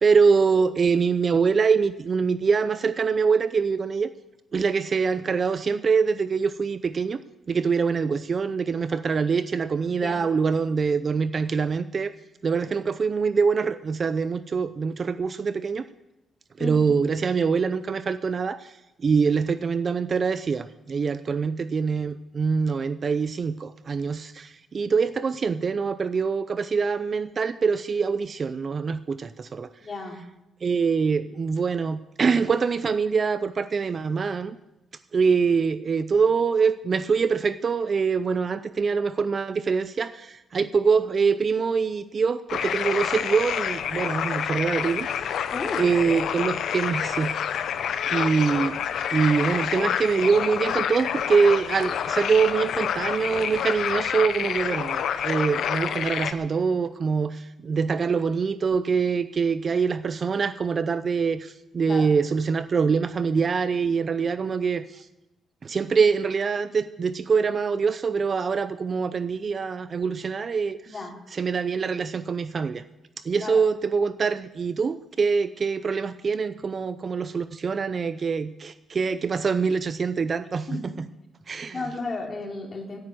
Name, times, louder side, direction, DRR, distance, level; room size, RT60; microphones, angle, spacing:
voice 1, 0.0-4.1 4.5-7.2 7.5-12.1 12.4-15.8 16.6-29.7 30.6-34.6 35.1-45.3 45.8-47.3 48.1-48.8 49.1-65.1 65.6-70.9 71.3-72.8 73.2-80.7 81.5-81.8, right 5 dB, 35° right, 13 dB, 0.5 m, -24 dB
voice 2, 29.8-30.2 45.5-45.9 61.9-62.1 70.9-71.2 73.4-73.6 80.7-80.8 81.7-83.0, left 3 dB, 30° left, 2 dB, 3.1 m, -33 dB
sound 1, 42.5-56.3, left 8 dB, 65° left, 0.8 m, -28 dB
16.0 x 9.6 x 7.9 m, 0.93 s
cardioid pair, 140°, 0 cm